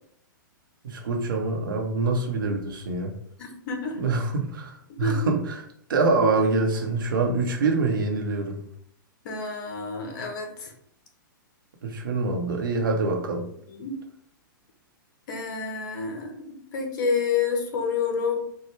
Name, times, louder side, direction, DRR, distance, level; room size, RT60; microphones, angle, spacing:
voice 1, 0.8-3.1 4.0-5.6 5.9-8.6 11.8-13.4, right 3 dB, 70° right, 2 dB, 0.9 m, -25 dB
voice 2, 3.4-4.0 4.9-5.3 9.2-10.7 13.7-14.0 15.3-18.4, left 5 dB, 55° left, 3 dB, 1.0 m, -29 dB
4.4 x 2.3 x 3.2 m, 0.68 s
hypercardioid pair, 110°, 11 cm